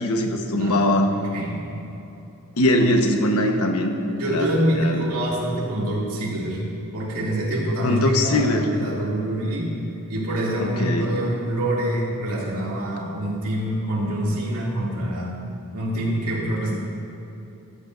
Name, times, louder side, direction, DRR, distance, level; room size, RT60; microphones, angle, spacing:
voice 1, 0.0-1.1 2.6-3.9 4.3-4.5 4.8-5.1 7.8-8.7 10.8-11.1, left 1 dB, 90° left, 4 dB, 1.1 m, -21 dB
voice 2, 0.5-1.7 4.1-6.6 6.9-9.7 10.1-15.4 15.7-16.8, right 1 dB, 85° right, -4 dB, 2.5 m, -26 dB
14.5 x 13.0 x 2.6 m, 2.8 s
head